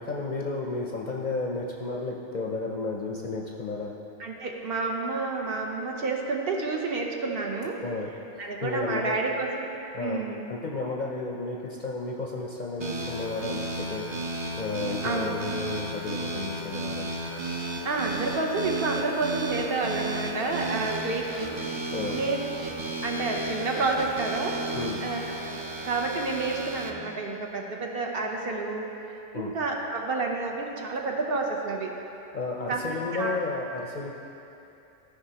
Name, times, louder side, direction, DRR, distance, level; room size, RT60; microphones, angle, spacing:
voice 1, 0.0-3.9 7.8-9.2 9.9-10.2 10.5-14.1 14.6-17.1 20.6-20.7 21.9-22.2 24.7-25.0 29.3-29.5 32.3-34.1, left 3 dB, 50° left, -1 dB, 0.6 m, -33 dB
voice 2, 4.2-7.8 8.4-9.7 10.0-10.4 15.0-15.4 17.8-21.7 22.1-22.4 23.0-24.6 25.0-25.6 25.8-28.9 29.3-31.9 32.7-32.8 33.1-33.4, right 3 dB, 55° right, 1 dB, 0.9 m, -29 dB
sound 1, 12.8-26.9, right 2 dB, 35° right, 0.4 m, -34 dB
14.0 x 5.1 x 2.8 m, 2.8 s
omnidirectional pair, 1.2 m